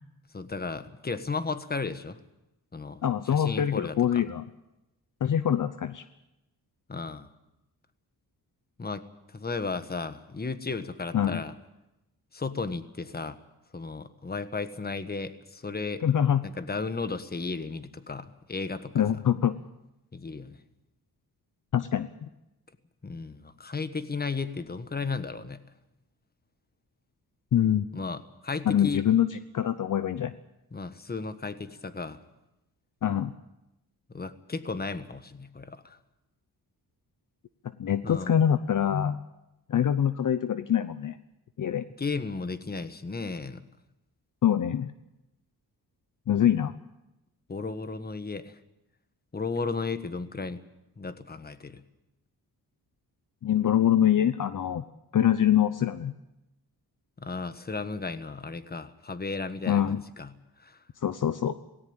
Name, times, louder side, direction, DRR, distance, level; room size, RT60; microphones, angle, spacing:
voice 1, 0.3-2.2 2.7-4.2 6.9-7.3 8.8-9.0 9.3-11.5 12.3-13.4 13.7-16.0 16.4-19.2 20.1-20.6 23.0-25.6 27.9-29.0 30.7-32.2 34.1-36.0 38.0-38.3 42.0-43.6 47.5-48.6 49.3-50.6 51.0-51.8 57.2-60.3 60.6-60.8, left 4 dB, 25° left, 11 dB, 1.4 m, -34 dB
voice 2, 3.0-4.4 5.2-6.0 11.1-11.4 16.0-16.4 18.9-19.5 21.7-22.3 27.5-27.9 28.7-29.3 29.5-30.3 33.0-33.3 37.8-39.2 39.7-41.2 41.6-41.8 44.4-44.9 46.3-46.7 53.4-54.8 55.1-56.1 59.7-60.0 61.0-61.6, left 10 dB, 55° left, 12 dB, 0.8 m, -24 dB
18.0 x 17.5 x 8.9 m, 0.93 s
cardioid pair, 95°, 38 cm